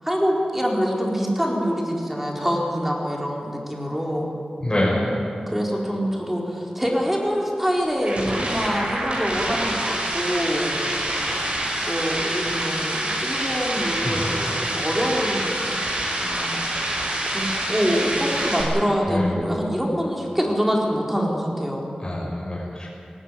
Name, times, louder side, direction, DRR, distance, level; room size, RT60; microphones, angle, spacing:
voice 1, 0.0-4.3 5.5-10.8 11.9-15.7 16.2-16.9 17.3-21.9, equal, 10° right, -1 dB, 4.3 m, -25 dB
voice 2, 4.6-5.0 14.0-14.3 19.1-19.3 22.0-22.9, left 1 dB, 25° left, -6 dB, 6.1 m, -25 dB
sound 1, 7.6-18.6, right 1 dB, 50° right, 6.0 m, -26 dB
19.0 x 18.5 x 9.9 m, 2.6 s
wide cardioid pair, 80°, 3 cm